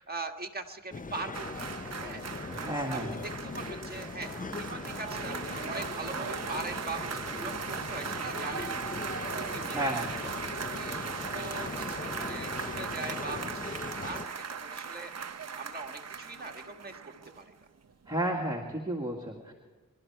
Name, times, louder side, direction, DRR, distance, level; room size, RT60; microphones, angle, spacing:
voice 1, 0.0-2.3 2.6-3.2 3.4-9.0 9.4-14.3 14.6-17.5, right 3 dB, 30° right, 3 dB, 1.6 m, -42 dB
sound 1, 0.9-14.3, left 3 dB, 25° left, 0.6 m, -40 dB
sound 2, 1.3-17.6 17.9-18.1, right 6 dB, 50° right, 0.7 m, -38 dB
voice 2, 2.5-3.1 9.7-10.1 18.1-19.5, right 1 dB, 15° right, 0 dB, 2.0 m, -32 dB
24.5 x 12.5 x 4.7 m, 1.4 s
wide cardioid pair, 70°, 33 cm